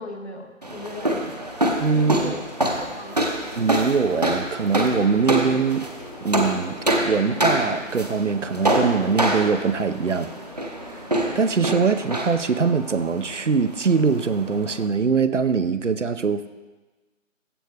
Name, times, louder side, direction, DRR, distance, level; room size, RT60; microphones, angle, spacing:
voice 1, 0.0-1.5 1.9-3.2, left 2 dB, 55° left, 3 dB, 1.6 m, -37 dB
sound 1, 0.6-14.9, right 1 dB, 30° right, 0.7 m, -26 dB
voice 2, 1.8-2.3 3.6-5.9 6.2-6.8 7.1-10.3 10.9-11.1 11.3-16.5, right 5 dB, 65° right, 12 dB, 0.7 m, -22 dB
sound 2, 3.0-11.4, left 1 dB, 25° left, 1.0 m, -44 dB
15.0 x 8.2 x 3.3 m, 1.2 s
figure-of-eight pair, 160°, 39 cm